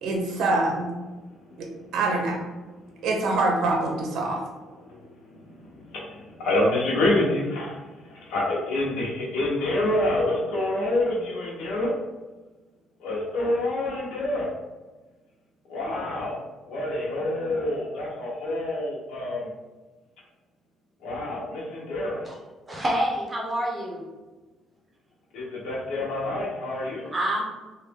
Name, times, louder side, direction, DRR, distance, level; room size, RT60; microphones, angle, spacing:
voice 1, 0.0-0.9 1.6-1.7 1.9-2.5 3.0-4.4, right 2 dB, 75° right, 1 dB, 0.6 m, -25 dB
voice 2, 6.4-7.7 8.1-11.9 13.0-14.5 15.7-16.4 16.7-19.5 21.0-22.2 25.3-27.1, left 1 dB, 75° left, -3 dB, 0.9 m, -27 dB
voice 3, 22.7-24.0 27.1-27.4, right 1 dB, 20° right, -3 dB, 1.0 m, -27 dB
3.0 x 2.5 x 3.4 m, 1.2 s
cardioid pair, 100°, 0 cm